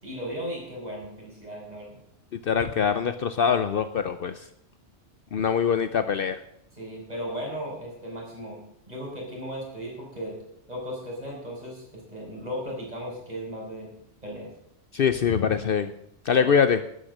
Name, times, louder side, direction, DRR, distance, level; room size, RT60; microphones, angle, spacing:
voice 1, 0.0-2.0 6.7-8.6 8.9-10.4 10.7-13.9 14.2-14.5 16.3-16.5, equal, 35° right, -3 dB, 5.4 m, -36 dB
voice 2, 2.4-4.3 5.3-6.4 14.9-15.9 16.3-16.8, left 7 dB, 60° left, 11 dB, 0.8 m, -23 dB
12.0 x 9.3 x 6.5 m, 0.73 s
omnidirectional pair, 1.2 m